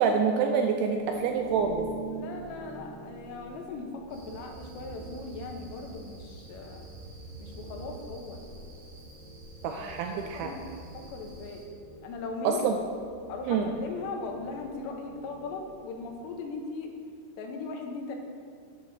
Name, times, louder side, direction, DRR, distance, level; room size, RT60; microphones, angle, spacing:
voice 1, 0.0-1.9 9.6-10.5 12.4-12.8 13.5-13.7, right 6 dB, 85° right, 4 dB, 2.3 m, -26 dB
sound 1, 0.9-16.7, right 3 dB, 50° left, 2.0 m, -47 dB
voice 2, 2.1-6.9 7.4-8.4 9.6-11.7 12.0-12.6 13.3-16.9 17.4-18.2, left 4 dB, 85° left, 3 dB, 3.0 m, -39 dB
sound 2, 4.1-11.6, right 2 dB, 45° right, 3.3 m, -48 dB
8.8 x 5.6 x 6.5 m, 2.2 s
omnidirectional pair, 5.0 m